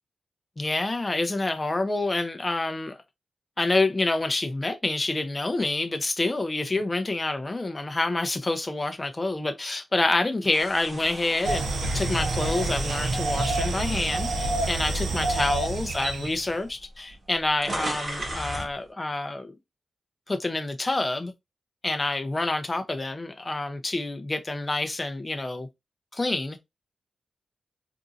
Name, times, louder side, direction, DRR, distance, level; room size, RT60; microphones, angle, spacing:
voice 1, 0.6-3.0 3.6-11.6 11.9-19.5 20.3-21.3 21.8-25.7 26.1-26.6, left 2 dB, 25° left, 0.6 m, -27 dB
sound 1, 10.5-14.8 15.3-15.5 16.4-16.5 16.7-18.7, right 1 dB, 40° right, 1.7 m, -37 dB
sound 2, 11.4-16.4, right 2 dB, 85° right, 0.7 m, -27 dB
3.9 x 2.7 x 2.4 m
cardioid pair, 80°, 0 cm